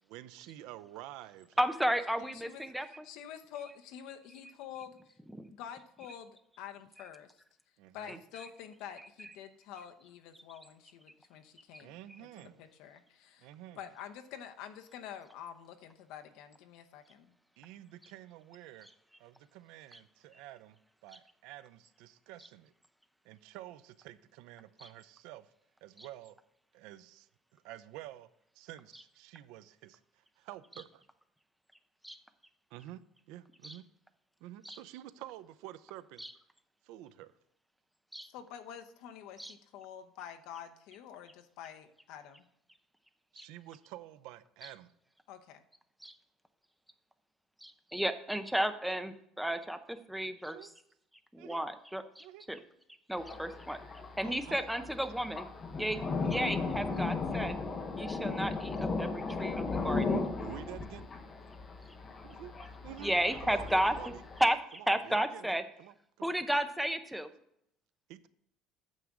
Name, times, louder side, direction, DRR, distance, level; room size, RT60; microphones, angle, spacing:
voice 1, 0.1-1.5 7.8-8.2 11.8-12.6 13.4-13.8 17.6-18.9 19.2-20.7 21.0-22.7 23.3-25.4 25.8-26.3 26.7-27.2 27.6-28.3 28.6-30.0 30.5-30.9 32.7-33.0 33.3-33.8 34.4-36.2 36.9-37.3 43.3-44.9 50.5-50.7 51.4-51.6 52.2-52.4 54.2-54.6 60.4-61.1 62.2-62.5 62.8-63.1 63.4-64.2 65.1-65.4 65.8-66.3 68.1-68.3, right 14 dB, 75° right, 14 dB, 0.5 m, -49 dB
voice 2, 1.6-3.0 8.1-8.2 11.7-11.8 18.0-18.1 18.8-18.9 19.9-20.0 22.4-22.5 24.8-24.9 26.0-26.1 28.9-29.0 32.0-32.2 33.6-33.8 34.6-34.8 36.2-36.3 38.1-38.3 39.4-39.5 43.4-43.5 44.6-44.7 46.0-46.1 47.6-50.7 51.3-52.6 53.1-53.8 54.2-55.5 55.8-57.6 58.0-60.2 63.0-65.6 66.2-67.3, right 1 dB, ahead, 9 dB, 0.6 m, -33 dB
voice 3, 2.2-5.0 5.5-7.4 7.9-13.5 13.7-17.3 38.2-42.5 45.3-45.6, left 9 dB, 70° left, 8 dB, 0.9 m, -48 dB
Thunder, 53.2-64.5, left 3 dB, 25° left, 1.0 m, -36 dB
9.2 x 7.2 x 3.7 m, 0.73 s
cardioid pair, 160°, 0 cm